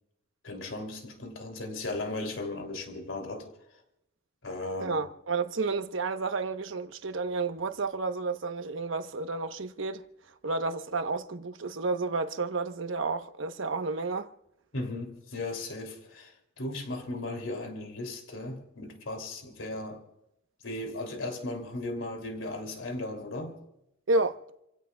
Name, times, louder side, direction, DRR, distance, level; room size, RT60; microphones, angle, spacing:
voice 1, 0.4-3.8 4.4-5.0 14.7-20.0 20.6-23.6, left 2 dB, 75° left, 3.1 m, -36 dB
voice 2, 4.8-10.0 10.4-14.3 24.1-24.4, right 3 dB, 75° right, 1.0 m, -31 dB
29.5 x 16.5 x 2.4 m
head